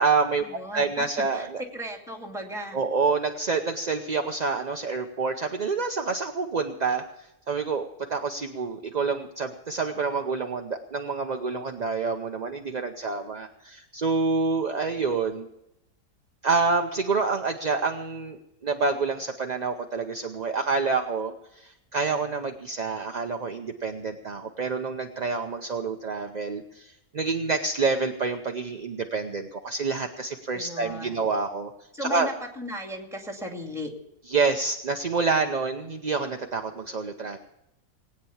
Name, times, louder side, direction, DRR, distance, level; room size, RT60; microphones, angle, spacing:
voice 1, 0.0-1.6 2.7-15.5 16.4-31.7 32.0-32.3 34.3-37.4, right 4 dB, 40° right, 4 dB, 0.6 m, -27 dB
voice 2, 0.5-1.1 1.3-2.8 30.5-31.2 31.9-33.9, equal, ahead, 2 dB, 2.3 m, -36 dB
19.5 x 9.2 x 7.1 m, 0.84 s
omnidirectional pair, 1.7 m